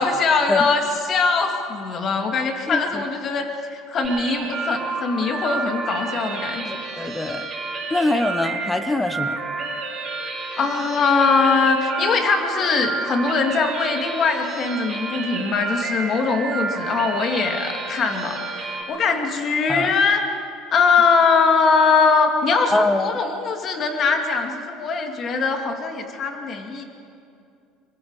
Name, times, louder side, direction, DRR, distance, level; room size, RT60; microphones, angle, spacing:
voice 1, 0.0-6.7 10.1-20.3 20.7-26.8, left 4 dB, 35° left, 4 dB, 2.2 m, -21 dB
voice 2, 2.7-3.0 6.6-7.5 7.9-9.4 19.7-19.9 22.7-23.1, left 2 dB, 10° left, 10 dB, 0.9 m, -23 dB
sound 1, 4.0-18.8, right 4 dB, 20° right, 7.4 m, -30 dB
27.0 x 23.5 x 4.8 m, 2.5 s
cardioid pair, 150°, 0 cm